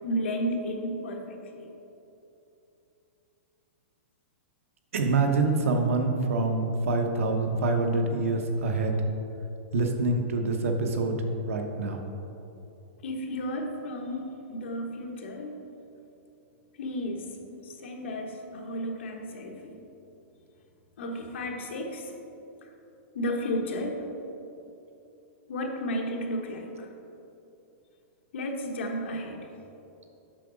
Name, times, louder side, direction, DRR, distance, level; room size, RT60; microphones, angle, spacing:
voice 1, 0.0-1.7 13.0-15.6 16.8-17.2 17.8-19.8 21.0-22.0 23.1-24.1 25.5-26.9 28.3-29.4, equal, 60° left, 2 dB, 1.1 m, -33 dB
voice 2, 4.9-9.0 9.7-11.2 11.5-12.0, right 3 dB, 80° right, 4 dB, 1.0 m, -26 dB
7.5 x 4.8 x 5.1 m, 2.9 s
supercardioid pair, 175°, 7 cm